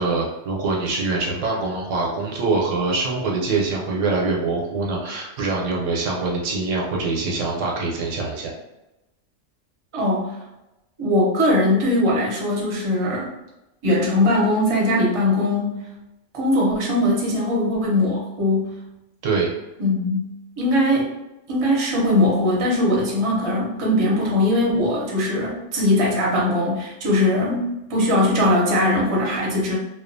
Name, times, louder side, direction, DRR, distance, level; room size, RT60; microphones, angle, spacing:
voice 1, 0.0-8.5 19.2-19.5, right 3 dB, 80° right, -1 dB, 1.0 m, -24 dB
voice 2, 9.9-10.3 11.0-13.3 13.8-15.8 16.3-18.7 19.8-20.3 20.6-21.1 21.5-29.8, left 1 dB, 35° right, -4 dB, 0.6 m, -20 dB
2.4 x 2.3 x 2.5 m, 0.95 s
omnidirectional pair, 1.3 m